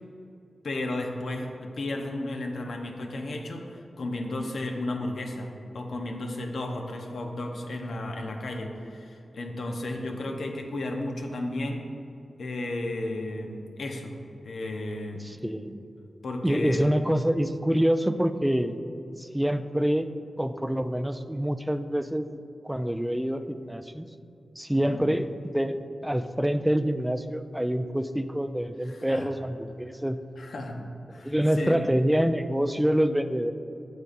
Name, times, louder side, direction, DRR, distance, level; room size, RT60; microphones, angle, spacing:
voice 1, 0.6-11.8 12.4-14.2 14.4-15.5 16.2-16.9 24.9-25.0 28.8-29.3 30.4-30.8 31.1-31.9, left 2 dB, 75° left, 2 dB, 0.7 m, -33 dB
voice 2, 15.2-15.8 16.4-18.8 19.2-20.1 20.4-24.1 24.6-25.3 25.5-25.8 26.0-30.2 31.2-33.5, equal, 5° right, 10 dB, 0.3 m, -26 dB
9.1 x 6.5 x 2.5 m, 2.7 s
cardioid pair, 65°, 0 cm